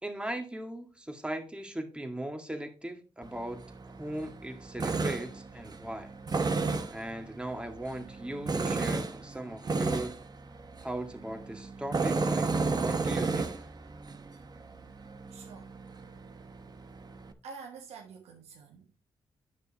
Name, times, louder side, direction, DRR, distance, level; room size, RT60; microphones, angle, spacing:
voice 1, 0.0-6.1 6.9-10.1 10.8-13.5, right 1 dB, 10° right, 2.0 m, -38 dB
Tools, 3.2-17.3, right 3 dB, 40° right, 1.0 m, -34 dB
voice 2, 15.3-16.2 17.4-19.0, right 5 dB, 85° right, 1.1 m, -48 dB
9.7 x 6.3 x 2.9 m
supercardioid pair, 55°, 11 cm